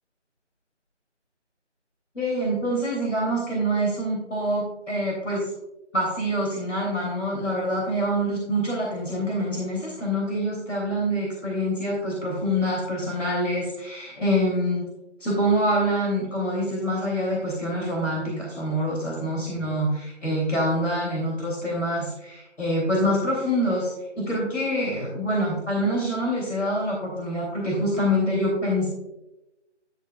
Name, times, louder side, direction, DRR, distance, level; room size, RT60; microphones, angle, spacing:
voice 1, 2.1-5.5 5.9-14.9 15.2-28.9, equal, 80° left, -3 dB, 3.2 m, -26 dB
11.0 x 7.7 x 2.4 m, 0.94 s
figure-of-eight pair, 170°, 36 cm